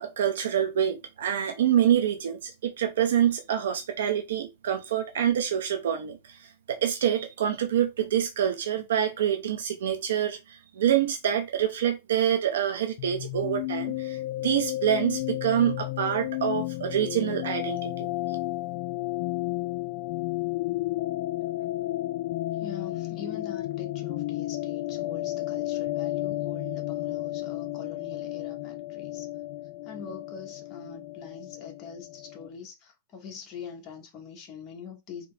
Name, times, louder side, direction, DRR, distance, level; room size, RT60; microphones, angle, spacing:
voice 1, 0.0-18.1, right 10 dB, 85° right, 0.7 m, -26 dB
sound 1, 13.0-32.5, left 17 dB, 50° left, 0.3 m, -32 dB
voice 2, 22.5-29.3 29.8-35.3, left 5 dB, 30° left, 1.1 m, -44 dB
3.8 x 2.9 x 3.3 m
supercardioid pair, 160°, 0 cm